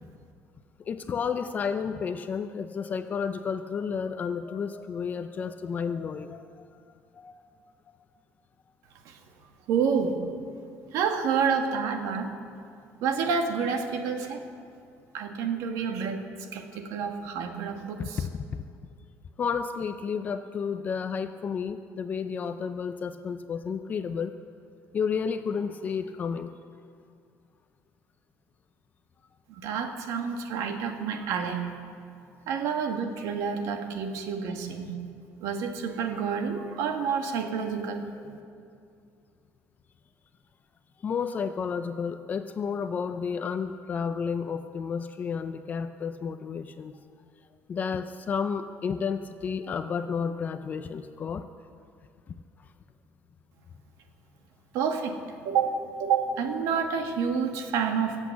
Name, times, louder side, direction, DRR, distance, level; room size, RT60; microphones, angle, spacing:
voice 1, 0.8-6.6 7.1-7.3 18.0-18.6 19.4-24.3 24.9-26.5 41.0-47.0 47.7-51.4, left 6 dB, 30° left, 9 dB, 0.5 m, -31 dB
voice 2, 9.7-10.2 10.9-12.3 13.0-14.4 15.1-16.2 16.5-18.2 29.6-31.7 32.5-34.9 35.4-38.0 54.7-55.2 55.4-58.2, right 6 dB, 80° right, 4 dB, 1.7 m, -28 dB
24.5 x 8.2 x 7.2 m, 2.4 s
cardioid pair, 165°, 6 cm